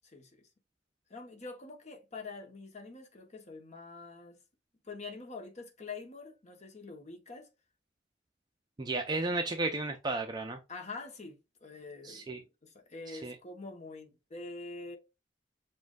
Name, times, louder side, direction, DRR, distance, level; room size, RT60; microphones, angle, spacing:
voice 1, 0.1-0.5 1.1-4.4 4.8-7.5 10.7-15.0, left 3 dB, 35° left, 1.0 m, -45 dB
voice 2, 8.8-10.6 12.0-12.4 13.1-13.3, right 2 dB, 20° right, 0.4 m, -33 dB
7.3 x 2.5 x 2.3 m
head